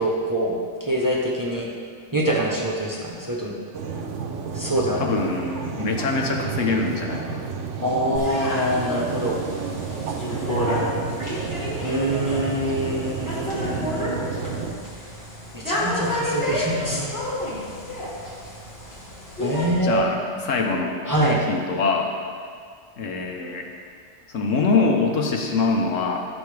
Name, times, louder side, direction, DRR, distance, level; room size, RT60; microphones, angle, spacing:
voice 1, 0.0-1.7 2.1-3.5 4.5-5.1 7.8-9.4 11.8-14.2 15.5-17.0 19.4-20.0 20.3-20.4 21.1-21.4, right 1 dB, 20° right, -2 dB, 0.8 m, -24 dB
sound 1, 3.7-14.7, right 5 dB, 75° right, 1.0 m, -31 dB
voice 2, 5.0-7.4 19.8-21.0 21.5-22.1 23.0-23.7 24.3-26.2, left 4 dB, 85° left, 2 dB, 1.3 m, -24 dB
sound 2, 8.2-19.7, left 1 dB, 55° left, 2.1 m, -30 dB
11.5 x 6.3 x 3.3 m, 2.1 s
omnidirectional pair, 1.3 m